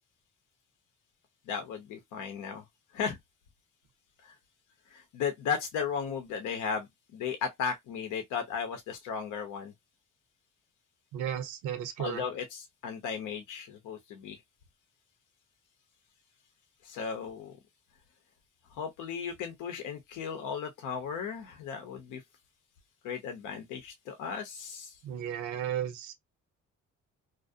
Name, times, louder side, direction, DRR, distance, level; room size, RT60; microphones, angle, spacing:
voice 1, 1.5-2.6 2.9-3.2 4.2-4.3 4.9-9.7 12.0-14.4 16.8-17.6 18.7-22.2 23.0-24.9, left 6 dB, 90° left, 0.6 m, -35 dB
voice 2, 11.1-12.2 25.0-26.1, right 10 dB, 85° right, 0.7 m, -34 dB
2.5 x 2.0 x 2.4 m
cardioid pair, 90°, 30 cm